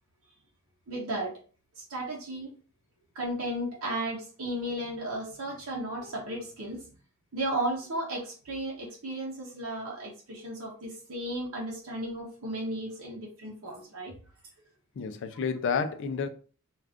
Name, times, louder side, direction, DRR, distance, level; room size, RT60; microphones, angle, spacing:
voice 1, 0.9-1.3 1.9-2.5 3.2-6.8 7.3-14.1, right 1 dB, 70° right, 0.7 m, -34 dB
voice 2, 15.0-16.3, left 5 dB, 60° left, 0.4 m, -30 dB
2.4 x 2.3 x 3.4 m
head